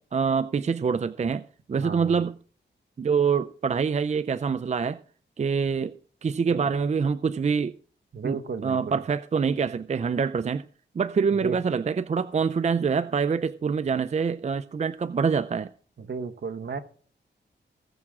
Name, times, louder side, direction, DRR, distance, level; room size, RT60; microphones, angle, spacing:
voice 1, 0.0-2.4 3.0-5.0 5.4-5.9 6.2-7.8 8.2-10.6 10.9-15.7, right 6 dB, 35° right, 0.4 m, -25 dB
voice 2, 1.8-2.2 6.5-6.6 8.1-9.0 11.4-11.6 16.0-16.8, right 5 dB, 65° right, 1.2 m, -33 dB
19.5 x 7.3 x 3.7 m
wide cardioid pair, 105°, 19 cm